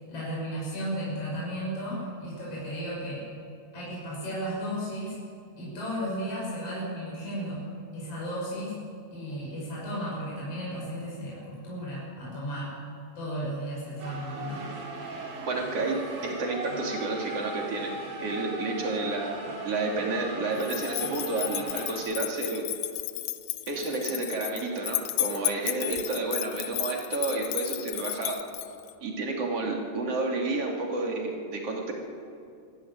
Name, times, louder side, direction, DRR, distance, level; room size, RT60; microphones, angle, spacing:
voice 1, 0.1-3.3 3.7-5.2 5.6-7.6 7.9-8.7 9.1-12.8 13.2-14.7, equal, 45° left, -6 dB, 7.2 m, -34 dB
sound 1, 14.0-22.0, right 2 dB, 70° right, 4.1 m, -38 dB
voice 2, 15.2-17.9 18.2-22.6 23.7-28.4 29.0-31.9, right 3 dB, 50° right, 0 dB, 3.6 m, -30 dB
sound 2, 20.6-28.9, left 15 dB, 75° left, 1.8 m, -33 dB
25.5 x 11.5 x 9.6 m, 2.4 s
omnidirectional pair, 3.7 m